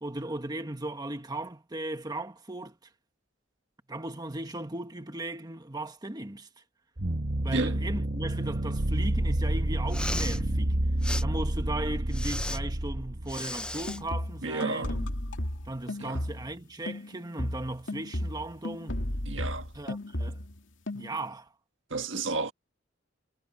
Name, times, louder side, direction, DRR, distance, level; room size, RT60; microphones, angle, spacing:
voice 1, 0.0-2.7 3.9-6.5 7.4-10.7 11.2-15.1 15.6-19.0 19.7-20.4 20.9-21.5, right 1 dB, 20° right, 1.6 m, -37 dB
sound 1, 7.0-14.1, right 1 dB, 50° right, 1.3 m, -29 dB
Respiratory sounds, 9.8-10.4 11.0-11.2 12.1-12.6 13.3-14.0, left 1 dB, 5° left, 0.7 m, -35 dB
sound 2, 13.7-16.6 16.9-20.6 20.9-21.3, left 1 dB, 70° left, 2.6 m, -34 dB
voice 2, 14.4-14.9 16.0-16.2 19.3-19.7 21.9-22.5, right 3 dB, 65° right, 1.8 m, -31 dB
head